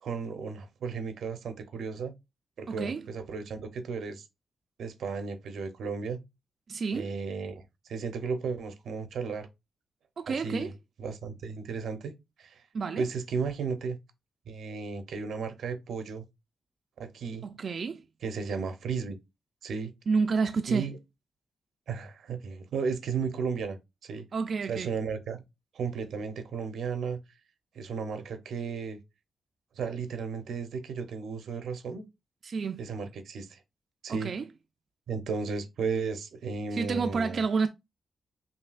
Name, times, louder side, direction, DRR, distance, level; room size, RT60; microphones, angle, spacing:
voice 1, 0.0-2.1 2.6-4.3 4.8-6.2 6.9-7.6 7.9-9.5 10.3-10.7 11.0-12.1 12.4-12.6 13.0-14.0 14.5-16.2 17.0-17.5 18.2-19.2 19.6-19.9 20.7-21.0 21.9-24.2 24.7-25.4 25.7-27.2 27.7-29.0 29.8-32.1 32.8-33.6 34.0-34.3 35.1-37.4, right 5 dB, 85° right, 0.7 m, -34 dB
voice 2, 2.7-3.1 6.7-7.1 10.2-10.7 12.7-13.1 17.4-18.0 20.1-20.9 24.3-24.9 32.4-32.8 34.1-34.5 36.7-37.7, right 5 dB, 50° right, 0.3 m, -29 dB
5.5 x 2.7 x 2.4 m
wide cardioid pair, 130°, 0 cm